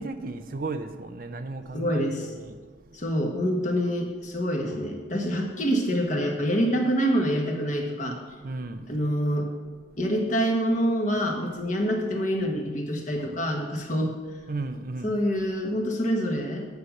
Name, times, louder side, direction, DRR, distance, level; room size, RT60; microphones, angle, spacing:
voice 1, 0.0-3.1 8.4-9.0 9.9-10.0 14.4-15.1, right 3 dB, 50° right, 8 dB, 0.6 m, -35 dB
voice 2, 1.7-2.3 2.9-8.2 8.9-9.5 10.0-14.1 15.0-16.7, equal, 45° left, 1 dB, 1.5 m, -26 dB
9.7 x 5.6 x 7.1 m, 1.4 s
head